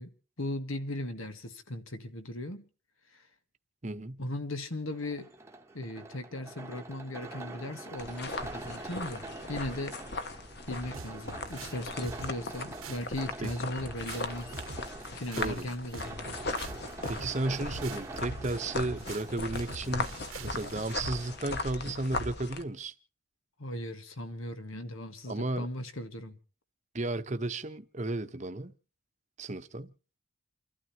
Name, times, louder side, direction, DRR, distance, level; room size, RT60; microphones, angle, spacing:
voice 1, 0.0-2.7 3.1-3.2 4.2-5.3 5.7-10.0 10.7-14.6 15.1-16.3 23.6-26.4, left 1 dB, 75° left, 1.7 m, -38 dB
voice 2, 3.8-4.2 13.4-13.5 15.3-15.7 17.1-22.9 25.3-25.7 26.9-28.7 29.4-29.9, right 2 dB, 35° right, 0.9 m, -34 dB
sound 1, 4.9-21.5, right 2 dB, 10° right, 1.1 m, -46 dB
sound 2, 8.0-22.6, left 3 dB, 50° left, 1.2 m, -38 dB
sound 3, 10.9-21.0, right 4 dB, 80° right, 1.2 m, -46 dB
29.5 x 12.5 x 2.9 m
head